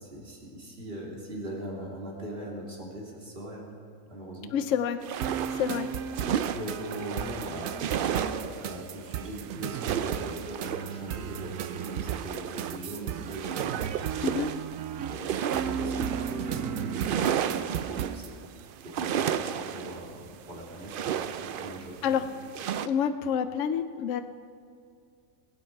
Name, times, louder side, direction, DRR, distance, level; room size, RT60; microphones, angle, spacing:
voice 1, 0.0-3.7 4.1-4.6 6.5-7.9 8.2-14.3 15.1-18.3 18.8-22.2, right 1 dB, 45° right, -3 dB, 2.9 m, -40 dB
voice 2, 4.5-5.0 5.5-5.9 14.2-14.5 22.0-22.3 22.8-24.2, left 8 dB, 70° left, 9 dB, 0.9 m, -28 dB
sound 1, 5.0-22.9, right 9 dB, 70° right, 0.5 m, -33 dB
sound 2, 5.2-18.3, right 8 dB, 85° right, 1.0 m, -35 dB
21.0 x 9.0 x 4.6 m, 2.3 s
omnidirectional pair, 1.4 m